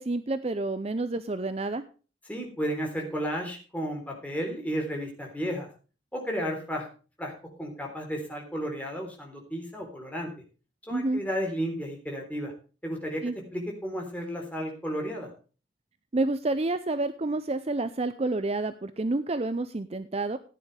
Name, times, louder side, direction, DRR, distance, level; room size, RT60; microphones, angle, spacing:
voice 1, 0.0-1.8 10.9-11.2 13.2-13.3 16.1-20.4, right 2 dB, 35° right, 11 dB, 0.6 m, -29 dB
voice 2, 2.3-5.7 6.1-6.9 7.2-7.3 7.6-10.3 10.8-12.5 12.8-13.2 13.5-15.3, equal, 10° left, 0 dB, 3.6 m, -33 dB
15.0 x 9.7 x 3.3 m, 0.35 s
head